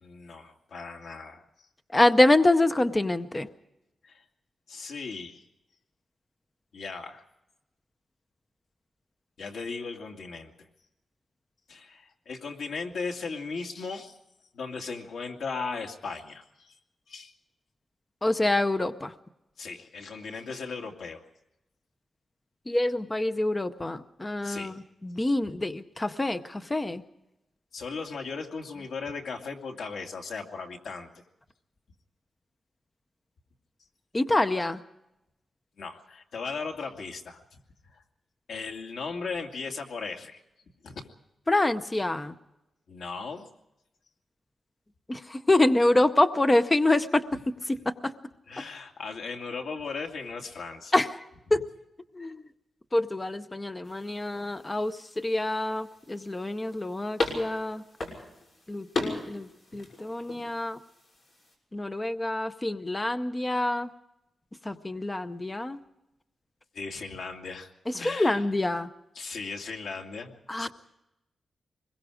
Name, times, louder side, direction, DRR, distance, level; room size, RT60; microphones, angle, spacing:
voice 1, 0.0-1.4 4.0-4.2 4.7-5.4 6.7-7.2 9.4-10.7 11.7-14.2 14.5-16.8 17.1-17.3 19.6-21.2 24.4-24.8 27.7-31.1 35.8-37.6 37.9-38.0 38.5-40.4 40.8-41.1 42.9-43.5 47.3-47.4 48.5-50.9 51.5-51.6 66.7-67.7 68.0-68.5 69.1-70.7, left 4 dB, 80° left, 2 dB, 2.5 m, -37 dB
voice 2, 1.9-3.5 18.2-19.1 22.7-24.7 25.0-27.0 34.1-34.8 41.5-42.3 45.1-47.2 47.9-48.1 50.9-51.1 51.5-51.6 52.1-52.4 52.9-57.8 58.7-59.5 59.7-60.8 61.7-63.9 64.7-65.8 68.0-68.9 70.5-70.7, left 2 dB, 15° left, 10 dB, 0.7 m, -26 dB
sound 1, 53.8-61.5, left 2 dB, 50° left, 6.0 m, -38 dB
25.0 x 21.5 x 5.0 m, 0.91 s
wide cardioid pair, 180°, 0 cm